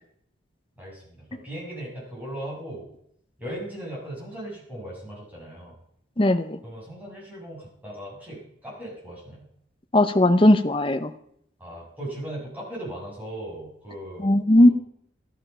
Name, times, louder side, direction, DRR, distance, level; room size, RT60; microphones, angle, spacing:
voice 1, 0.8-2.8 3.4-5.7 6.6-9.5 11.6-14.7, right 1 dB, 10° right, -5 dB, 6.8 m, -38 dB
voice 2, 6.2-6.6 9.9-11.1 14.2-14.7, left 1 dB, 25° left, 10 dB, 0.8 m, -18 dB
14.0 x 12.5 x 5.6 m, 0.71 s
head